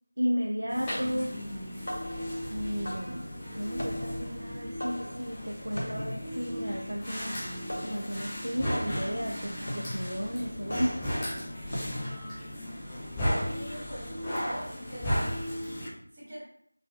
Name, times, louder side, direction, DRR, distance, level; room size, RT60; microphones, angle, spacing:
voice 1, 0.2-1.3 2.5-3.3 3.6-7.5 7.8-11.0, equal, 85° right, 1 dB, 0.4 m, -33 dB
sound 1, 0.7-15.9, equal, 10° left, 0.3 m, -35 dB
sound 2, 1.7-12.4, equal, 70° left, 0.6 m, -40 dB
voice 2, 13.4-15.3 16.1-16.4, equal, 10° right, -14 dB, 1.0 m, -42 dB
3.3 x 2.3 x 2.3 m, 0.65 s
figure-of-eight pair, 175°, 0 cm